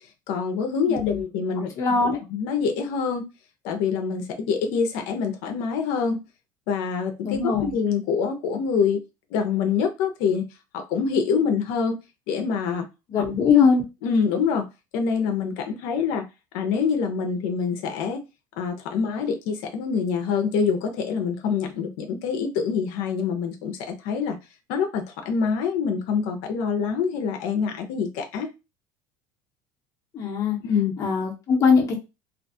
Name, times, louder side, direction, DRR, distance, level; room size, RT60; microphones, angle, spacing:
voice 1, 0.3-3.3 3.6-6.2 6.7-9.0 9.3-10.4 10.7-11.9 12.3-12.9 14.0-14.6 14.9-16.2 16.5-18.2 18.6-24.4 24.7-28.5 30.6-30.9, left 6 dB, 70° left, 0.6 m, -25 dB
voice 2, 0.9-1.2 1.8-2.2 7.2-7.7 13.1-13.8 30.1-30.6 31.0-32.0, left 5 dB, 35° left, 0.9 m, -21 dB
2.5 x 2.3 x 2.6 m
cardioid pair, 145°, 10 cm